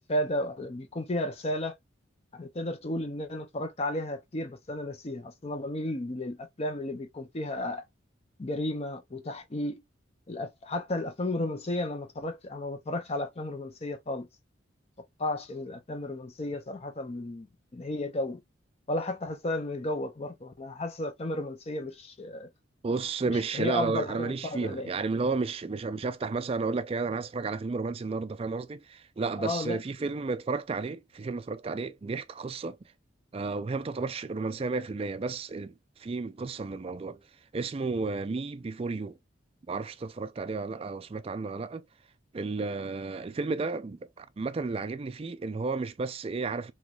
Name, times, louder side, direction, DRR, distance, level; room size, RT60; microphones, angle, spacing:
voice 1, 0.1-1.7 2.3-7.8 8.4-9.8 10.3-14.3 15.2-17.5 17.7-18.4 18.9-22.5 23.5-24.9 29.4-29.8, left 1 dB, 30° left, 0.5 m, -33 dB
voice 2, 22.8-32.8 33.3-37.2 37.5-39.2 39.7-41.8 42.3-46.7, right 4 dB, 30° right, 0.3 m, -32 dB
3.0 x 3.0 x 2.3 m
head